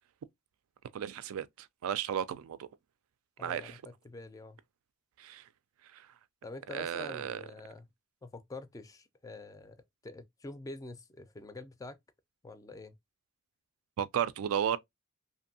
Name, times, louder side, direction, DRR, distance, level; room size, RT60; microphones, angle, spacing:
voice 1, 0.9-2.7 3.4-3.8 5.2-5.5 5.9-6.1 6.7-7.4 14.0-14.8, right 9 dB, 80° right, 0.3 m, -34 dB
voice 2, 3.4-4.6 6.4-7.9 8.2-9.8 10.0-12.0 12.4-13.0, left 2 dB, 15° left, 0.3 m, -46 dB
2.6 x 2.6 x 2.6 m
head